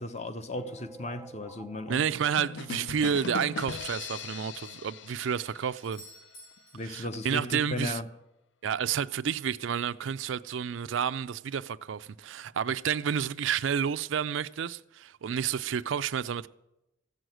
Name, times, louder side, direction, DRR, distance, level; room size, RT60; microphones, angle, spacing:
voice 1, 0.0-2.2 6.7-8.1, left 1 dB, 35° left, 0.8 m, -36 dB
sound 1, 0.5-3.4 3.9-4.3 4.6-4.7 5.6-5.7 6.1-6.2, right 2 dB, 15° right, 0.5 m, -49 dB
voice 2, 1.9-6.0 6.8-8.0 8.6-16.5, right 7 dB, 70° right, 0.4 m, -30 dB
sound 2, 2.4-6.1, left 5 dB, 60° left, 0.5 m, -39 dB
Doorbell, 5.8-7.7 11.8-11.9, left 1 dB, 90° left, 3.4 m, -53 dB
15.5 x 6.3 x 9.2 m
head